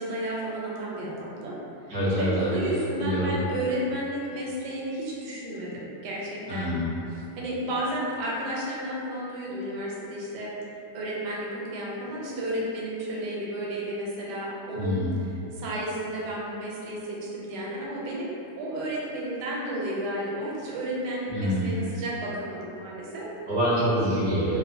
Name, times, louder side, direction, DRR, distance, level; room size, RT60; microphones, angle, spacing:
voice 1, 0.0-1.5 2.1-6.7 7.4-10.6 10.9-15.1 15.5-18.3 18.6-23.3, right 1 dB, 85° right, -5 dB, 1.2 m, -32 dB
voice 2, 1.9-2.5 3.0-3.4 6.5-6.9 14.7-15.1 21.3-21.7 23.5-24.6, equal, 40° right, -11 dB, 0.3 m, -26 dB
2.8 x 2.0 x 2.6 m, 2.8 s
omnidirectional pair, 1.8 m